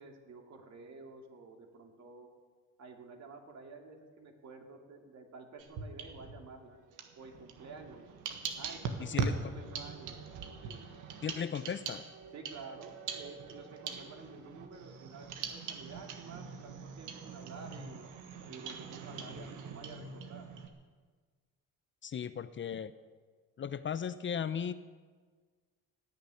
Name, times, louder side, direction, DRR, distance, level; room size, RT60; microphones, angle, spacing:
voice 1, 0.0-2.3 2.8-6.8 7.2-8.1 8.6-9.2 9.5-10.2 10.6-10.9 12.3-18.0 18.5-20.5, right 4 dB, 60° right, 3 dB, 2.7 m, -50 dB
sound 1, 5.6-6.5 6.9-20.7, right 5 dB, 90° right, 1.5 m, -42 dB
voice 2, 9.0-9.5 11.2-12.1 22.0-22.9 23.6-24.7, left 7 dB, 40° left, 14 dB, 0.6 m, -36 dB
17.5 x 6.7 x 9.6 m, 1.5 s
cardioid pair, 90°, 30 cm